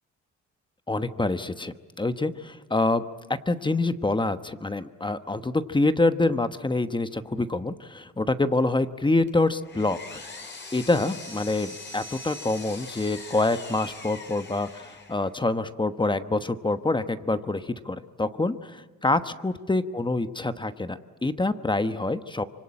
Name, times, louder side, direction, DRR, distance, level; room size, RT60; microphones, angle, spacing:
voice 1, 0.9-3.1 3.5-10.2 10.7-22.4, left 2 dB, 15° left, 11 dB, 1.1 m, -26 dB
Power tool, 9.3-15.4, left 3 dB, 40° left, 4.6 m, -42 dB
25.5 x 24.0 x 8.8 m, 1.2 s
cardioid pair, 90°, 30 cm